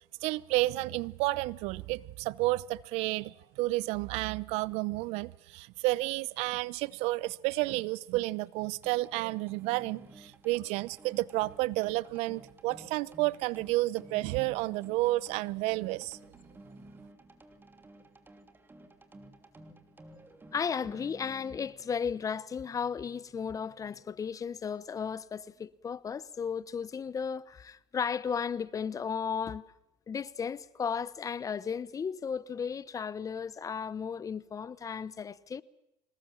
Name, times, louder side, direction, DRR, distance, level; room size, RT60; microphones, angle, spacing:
voice 1, 0.2-16.2, right 20 dB, 75° right, 0.7 m, -31 dB
sound 1, 8.8-21.7, right 1 dB, 20° right, 2.9 m, -54 dB
voice 2, 20.5-29.6 30.1-35.6, left 6 dB, 30° left, 1.0 m, -35 dB
25.5 x 19.5 x 7.5 m
supercardioid pair, 95°, 11 cm